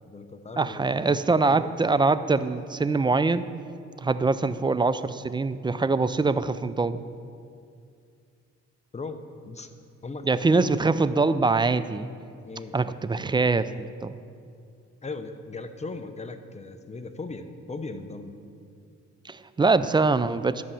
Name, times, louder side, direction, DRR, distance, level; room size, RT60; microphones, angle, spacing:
voice 1, 0.1-1.2 1.5-1.7 8.9-9.2 9.5-9.7 10.0-10.9 12.4-12.8 15.0-18.3, left 3 dB, 20° left, 8 dB, 0.8 m, -38 dB
voice 2, 0.6-3.5 4.0-7.0 10.2-12.1 12.7-14.2 19.2-20.6, right 3 dB, 15° right, 14 dB, 0.3 m, -23 dB
12.5 x 5.5 x 7.5 m, 2.3 s
cardioid pair, 90°, 30 cm